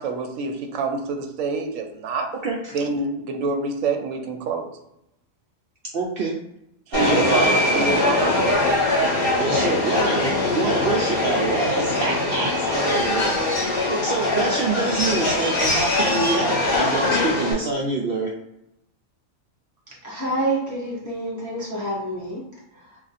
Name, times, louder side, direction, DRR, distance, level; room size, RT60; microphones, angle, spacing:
voice 1, 0.0-2.3 2.7-4.7 6.9-8.7, right 4 dB, 80° right, 5 dB, 1.0 m, -26 dB
voice 2, 5.9-6.3 6.9-7.8 9.4-13.3 13.9-18.3, right 3 dB, 65° right, -2 dB, 0.6 m, -26 dB
Subway metro underground, 6.9-17.5, left 2 dB, 45° left, 1.4 m, -22 dB
voice 3, 20.0-22.4, right 1 dB, 25° left, -5 dB, 0.4 m, -27 dB
2.5 x 2.4 x 4.0 m, 0.83 s
omnidirectional pair, 1.4 m